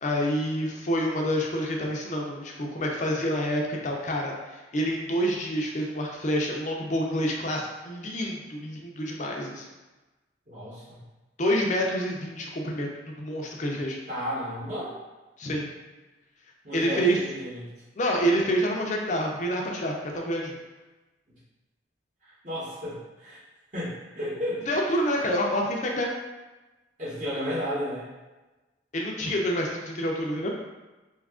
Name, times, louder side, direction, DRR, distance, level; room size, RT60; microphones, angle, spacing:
voice 1, 0.0-9.7 11.4-14.0 15.4-15.7 16.7-17.2 18.0-20.5 24.7-26.1 28.9-30.5, equal, 40° left, 0 dB, 0.4 m, -27 dB
voice 2, 10.5-11.0 14.1-14.9 16.6-17.7 22.2-23.4 23.7-24.6 24.9-25.0 27.0-28.1, equal, 40° right, -11 dB, 1.0 m, -33 dB
2.7 x 2.4 x 3.5 m, 1.1 s
head